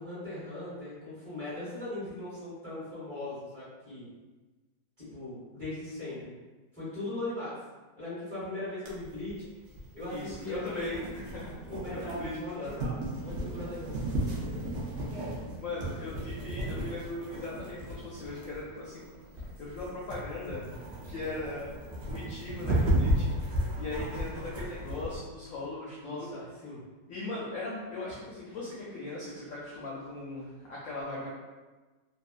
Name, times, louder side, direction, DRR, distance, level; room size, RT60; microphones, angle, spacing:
voice 1, 0.0-4.1 5.0-6.3 6.7-7.5 8.0-9.3 9.9-11.0 11.7-14.1 26.0-26.8, left 2 dB, 35° right, -12 dB, 0.9 m, -39 dB
sound 1, 8.9-25.2, right 1 dB, 85° right, 0.6 m, -34 dB
voice 2, 10.1-11.5 11.9-12.8 15.6-19.0 19.6-20.6 21.1-21.8 22.1-23.3 23.8-26.3 27.1-31.3, left 2 dB, 75° left, -6 dB, 0.7 m, -39 dB
2.8 x 2.3 x 2.4 m, 1.3 s
omnidirectional pair, 1.9 m